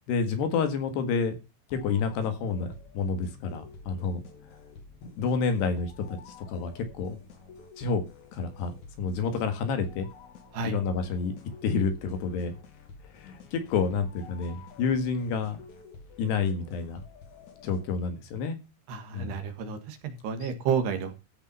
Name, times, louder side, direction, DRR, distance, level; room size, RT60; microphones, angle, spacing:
voice 1, 0.1-1.4 1.7-4.2 5.2-7.2 7.8-8.0 8.3-8.7 9.0-10.1 10.6-12.5 13.1-15.6 16.2-17.0 17.6-18.6 19.1-19.4 20.4-20.5, left 5 dB, 65° left, 8 dB, 3.6 m, -29 dB
sound 1, 1.7-18.2, left 5 dB, 50° left, 2.9 m, -50 dB
voice 2, 18.9-21.1, right 6 dB, 65° right, 8 dB, 3.5 m, -30 dB
14.5 x 6.7 x 5.4 m, 0.27 s
omnidirectional pair, 5.5 m